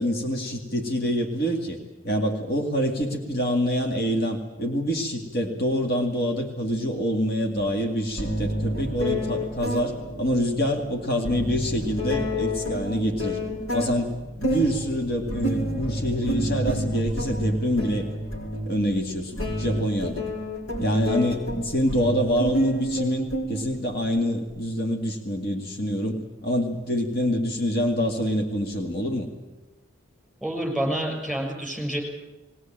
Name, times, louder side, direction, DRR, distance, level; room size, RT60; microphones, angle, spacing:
voice 1, 0.0-1.8 2.0-13.4 13.7-18.1 18.7-20.3 20.8-29.3, equal, 50° left, 3 dB, 2.2 m, -26 dB
sound 1, 7.6-7.7 8.2-24.1, equal, 75° left, 4.9 m, -30 dB
voice 2, 30.4-32.0, right 1 dB, 5° left, 2 dB, 6.3 m, -28 dB
21.0 x 18.0 x 8.9 m, 1.1 s
head